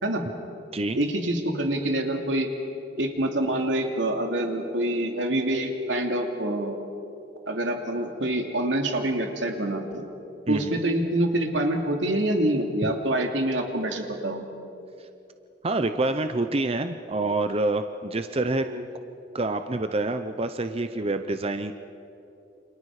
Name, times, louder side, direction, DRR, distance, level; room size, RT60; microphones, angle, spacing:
voice 1, 0.9-2.5 3.0-6.8 7.5-10.1 10.5-14.5 18.6-18.8, right 1 dB, 85° right, 3 dB, 2.8 m, -26 dB
voice 2, 10.5-10.8 12.8-12.9 15.6-18.7 19.3-21.7, right 2 dB, 35° right, 8 dB, 0.7 m, -27 dB
29.0 x 27.5 x 4.9 m, 2.7 s
head